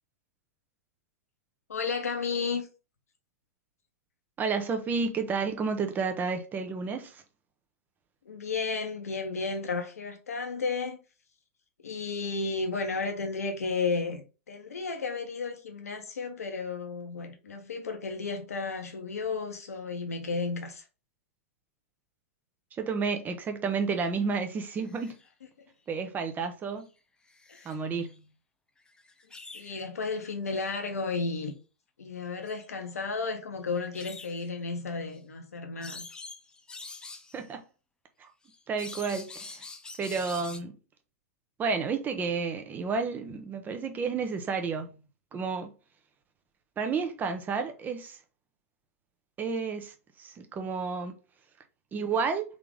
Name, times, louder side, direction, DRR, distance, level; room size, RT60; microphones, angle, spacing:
voice 1, 1.7-2.7 8.2-11.0 11.8-20.8 25.6-25.7 27.5-27.8 29.5-31.5 32.0-36.1, left 4 dB, 75° left, 1.1 m, -33 dB
voice 2, 4.4-7.2 22.8-25.2 25.9-26.9 27.6-28.2 37.3-37.6 38.7-39.6 40.0-40.8 41.6-44.9 45.3-45.7 46.8-48.2 49.4-51.1 51.9-52.4, right 5 dB, 20° right, 0.8 m, -31 dB
sound 1, 24.6-25.2 26.8-26.9 27.3-28.2 28.9-29.8 31.3-31.5 32.4-32.7 33.8-34.5 35.2-35.3 35.8-37.5 38.5-40.6, left 3 dB, 10° left, 0.5 m, -46 dB
3.7 x 3.4 x 3.7 m
figure-of-eight pair, 105°, 8 cm